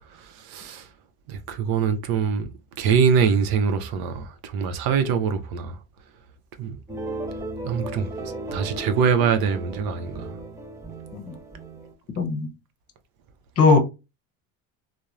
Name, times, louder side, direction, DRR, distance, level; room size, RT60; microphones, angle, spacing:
voice 1, 0.1-0.9 1.3-2.5 2.8-5.8 6.6-6.8 7.6-10.4, right 6 dB, 60° right, 0.6 m, -24 dB
sound 1, 6.9-11.9, right 2 dB, 10° right, 0.5 m, -35 dB
voice 2, 12.2-12.5 13.6-13.8, left 4 dB, 35° left, 0.7 m, -19 dB
2.8 x 2.0 x 2.3 m
supercardioid pair, 85°, 41 cm